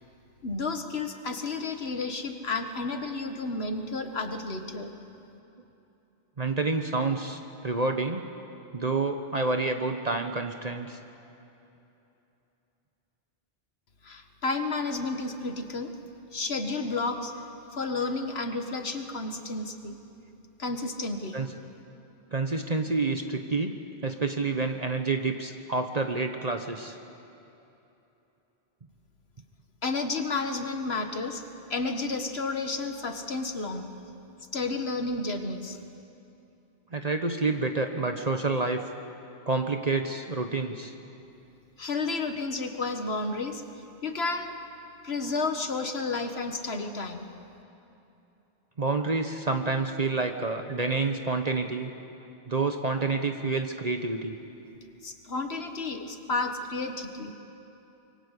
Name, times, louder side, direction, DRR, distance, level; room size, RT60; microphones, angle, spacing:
voice 1, 0.4-4.9 14.0-15.9 16.3-17.3 17.7-20.0 20.6-21.4 29.8-31.4 31.7-33.9 34.5-35.8 41.8-43.6 44.0-44.5 45.0-47.3 55.0-57.3, left 3 dB, 80° left, 6 dB, 1.9 m, -31 dB
voice 2, 6.4-8.3 8.7-11.0 21.3-21.6 22.3-23.8 24.0-27.0 36.9-38.8 39.5-40.9 48.8-51.9 52.5-54.3, right 3 dB, 40° right, 6 dB, 1.1 m, -28 dB
26.0 x 23.5 x 8.3 m, 2.9 s
omnidirectional pair, 1.0 m